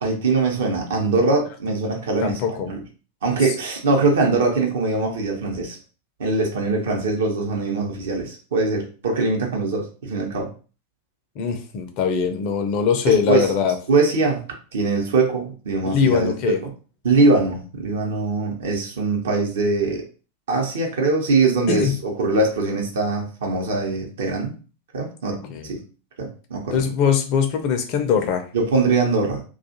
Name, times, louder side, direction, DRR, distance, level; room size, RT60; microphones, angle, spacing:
voice 1, 0.0-2.8 3.2-5.8 6.2-10.5 13.1-13.5 13.9-14.4 14.7-16.5 17.0-20.0 20.5-24.5 24.9-25.8 26.2-26.8 28.5-29.4, right 3 dB, 60° right, 1 dB, 0.8 m, -22 dB
voice 2, 2.2-2.7 11.4-13.7 15.9-16.6 21.7-21.9 25.4-25.7 26.7-28.4, left 7 dB, 45° left, 6 dB, 0.5 m, -21 dB
2.4 x 2.3 x 2.8 m, 0.36 s
figure-of-eight pair, 90°, 0 cm